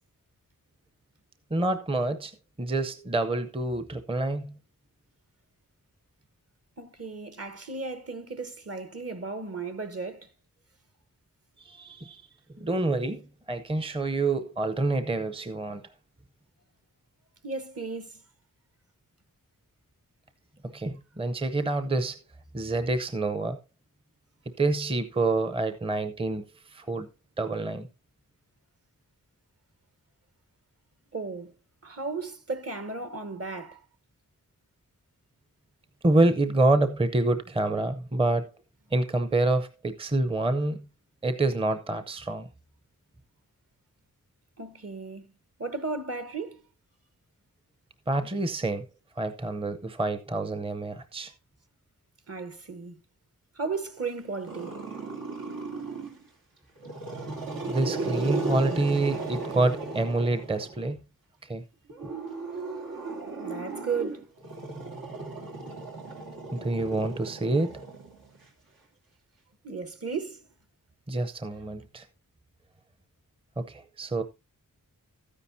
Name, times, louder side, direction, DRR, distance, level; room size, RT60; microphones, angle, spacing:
voice 1, 1.5-2.3 2.6-4.6 11.6-12.3 12.6-13.2 13.5-15.8 20.6-22.2 22.5-23.6 24.5-27.1 27.4-27.9 36.0-38.5 38.9-40.9 41.2-42.5 48.1-48.9 49.2-51.3 57.7-61.0 61.4-61.6 66.5-67.8 71.1-72.1 73.6-74.2, right 2 dB, 15° right, 0.7 m, -27 dB
voice 2, 6.8-10.3 17.4-18.1 31.1-31.5 31.8-33.8 44.6-45.3 45.6-46.6 52.3-53.0 53.6-54.7 63.4-64.2 69.6-70.4, right 4 dB, 45° right, 1.1 m, -35 dB
Growling, 54.5-56.2 56.8-60.9 61.9-68.4, right 3 dB, 85° right, 2.8 m, -35 dB
13.0 x 9.8 x 2.7 m
wide cardioid pair, 105°, 34 cm